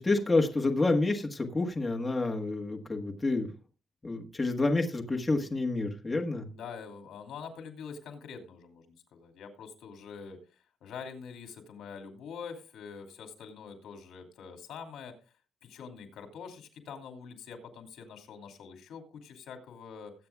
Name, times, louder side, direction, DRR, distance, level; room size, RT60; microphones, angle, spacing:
voice 1, 0.0-3.5 4.0-6.5, left 2 dB, 15° left, 2 dB, 1.4 m, -28 dB
voice 2, 6.5-10.4 10.8-15.1 15.6-20.1, left 6 dB, 75° left, 5 dB, 2.6 m, -45 dB
21.0 x 8.7 x 2.4 m, 0.33 s
cardioid pair, 155°, 0 cm